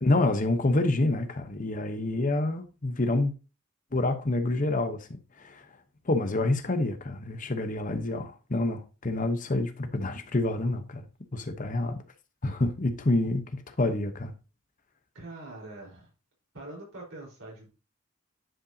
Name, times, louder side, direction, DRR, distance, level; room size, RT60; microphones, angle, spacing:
voice 1, 0.0-3.3 3.9-5.6 6.1-11.1 11.3-12.0 12.4-14.3, left 2 dB, 40° left, 0.9 m, -27 dB
voice 2, 15.1-16.1 16.5-17.7, right 2 dB, 75° right, 4.2 m, -43 dB
10.0 x 5.3 x 2.7 m
head